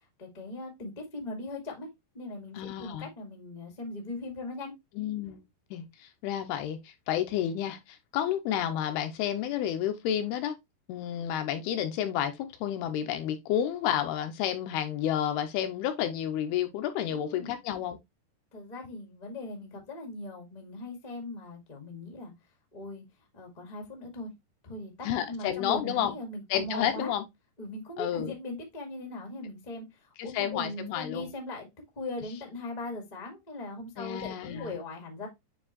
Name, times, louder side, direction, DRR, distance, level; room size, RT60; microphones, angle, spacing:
voice 1, 0.2-1.9 2.1-4.7 17.1-17.6 18.5-22.3 22.7-23.0 23.3-24.3 24.6-27.1 27.6-31.7 31.9-35.3, left 2 dB, 55° left, 0.4 m, -39 dB
voice 2, 2.6-3.1 5.0-5.4 5.7-10.6 10.9-18.0 25.0-26.2 26.5-27.2 28.0-28.3 30.2-31.3 34.0-34.8, left 10 dB, 85° left, 2.5 m, -31 dB
9.1 x 3.3 x 3.0 m
omnidirectional pair, 4.8 m